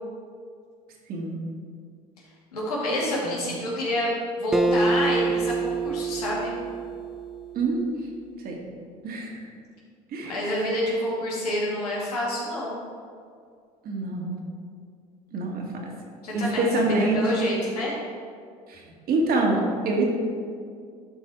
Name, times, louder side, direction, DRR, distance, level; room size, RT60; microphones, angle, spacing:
voice 1, 2.5-4.1 4.4-6.6 10.2-12.8 16.2-18.0, left 1 dB, 90° left, -5 dB, 2.4 m, -28 dB
Acoustic guitar, 4.5-7.9, right 3 dB, 5° right, 0.5 m, -27 dB
voice 2, 7.5-7.9 8.4-8.6 9.0-9.4 10.1-10.4 13.8-14.4 15.3-15.9 16.3-17.5 18.7-18.8 19.1-20.0, right 2 dB, 50° right, 0 dB, 2.1 m, -26 dB
12.0 x 4.6 x 4.8 m, 2.2 s
hypercardioid pair, 75°, 19 cm